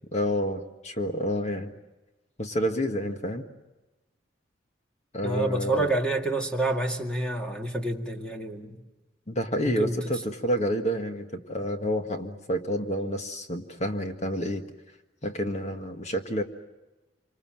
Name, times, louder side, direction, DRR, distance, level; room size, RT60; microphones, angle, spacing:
voice 1, 0.1-1.7 2.4-3.4 5.1-5.9 9.3-14.6 15.2-16.4, equal, 40° left, 5 dB, 1.7 m, -29 dB
voice 2, 5.2-8.8 9.6-10.0, right 2 dB, 5° left, 2 dB, 2.1 m, -28 dB
27.0 x 25.5 x 7.6 m, 1.1 s
head